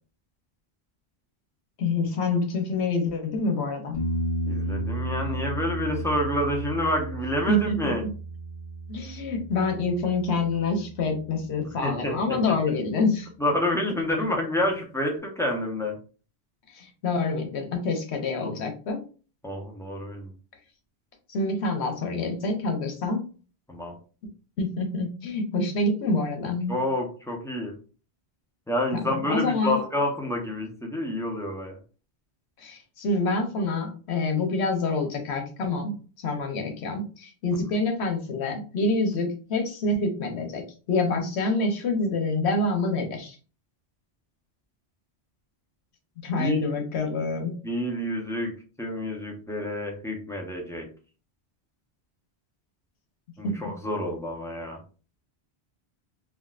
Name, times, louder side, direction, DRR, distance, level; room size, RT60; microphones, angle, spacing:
voice 1, 1.8-4.0 7.5-8.1 8.9-13.3 16.8-19.0 21.3-23.3 24.6-26.8 29.1-29.8 32.6-35.9 36.2-43.4 46.2-47.5 53.4-53.6, left 2 dB, 80° left, 4 dB, 1.0 m, -27 dB
sound 1, 3.9-11.5 14.6-14.7, right 2 dB, 50° left, 1.0 m, -33 dB
voice 2, 4.5-8.0 11.8-12.4 13.4-16.0 18.4-18.5 19.4-20.3 23.7-23.9 26.7-27.8 28.7-31.8 46.4-46.6 47.6-50.9 53.4-54.8, left 1 dB, 5° left, 0 dB, 0.4 m, -28 dB
3.5 x 2.3 x 2.3 m, 0.36 s
omnidirectional pair, 1.1 m